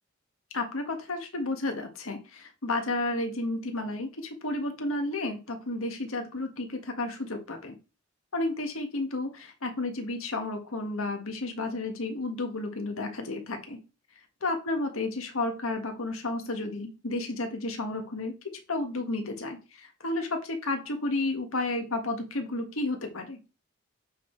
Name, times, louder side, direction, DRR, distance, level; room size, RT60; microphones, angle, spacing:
voice 1, 0.5-7.8 8.3-13.8 14.4-18.3 18.7-23.4, left 2 dB, 85° left, 5 dB, 1.4 m, -32 dB
8.2 x 3.8 x 4.4 m, 0.31 s
head